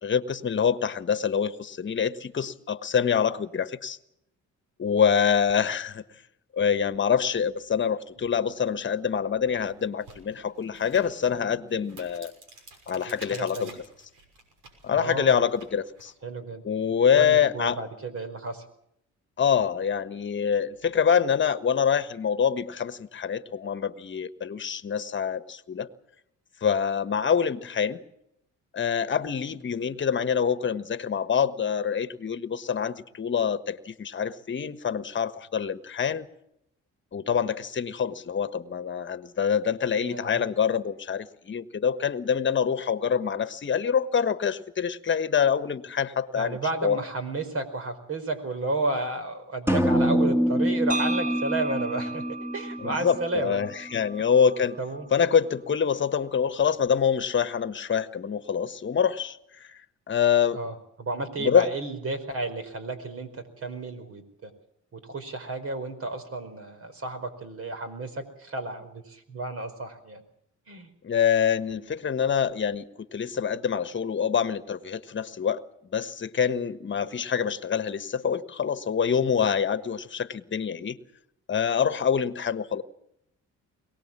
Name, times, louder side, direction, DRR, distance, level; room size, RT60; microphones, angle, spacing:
voice 1, 0.0-4.0 4.8-6.0 6.5-12.3 12.9-13.8 14.8-16.1 16.6-17.8 19.4-25.9 26.6-28.0 28.7-36.3 37.1-47.0 52.8-54.8 55.1-59.7 60.1-60.6 61.4-61.7 71.0-75.6 75.9-81.0 81.5-82.8, left 7 dB, 40° left, 12 dB, 1.4 m, -25 dB
sound 1, 8.9-9.0 9.5-16.1, right 3 dB, 85° right, 6.2 m, -50 dB
voice 2, 13.2-13.7 14.9-15.4 16.2-16.6 17.1-18.6 40.1-40.4 46.3-53.6 54.8-55.1 60.5-64.5 64.9-70.2 70.7-70.9, right 2 dB, 50° right, 8 dB, 4.8 m, -32 dB
sound 2, 49.7-53.5, equal, 10° right, 2.3 m, -25 dB
sound 3, 50.9-55.0, right 3 dB, 25° right, 5.0 m, -36 dB
23.0 x 18.5 x 7.4 m, 0.76 s
cardioid pair, 90°, 30 cm